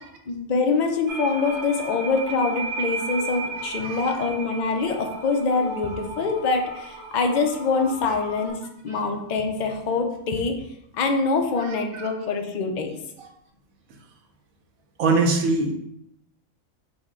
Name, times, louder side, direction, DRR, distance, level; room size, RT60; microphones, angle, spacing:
voice 1, 0.3-8.6 8.8-10.5 10.9-12.9, left 4 dB, 70° left, 3 dB, 0.4 m, -24 dB
sound 1, 1.1-8.5, right 3 dB, 55° right, 0.9 m, -35 dB
voice 2, 15.0-15.7, right 3 dB, 80° right, 3 dB, 1.1 m, -21 dB
6.0 x 2.2 x 3.6 m, 0.78 s
omnidirectional pair, 1.4 m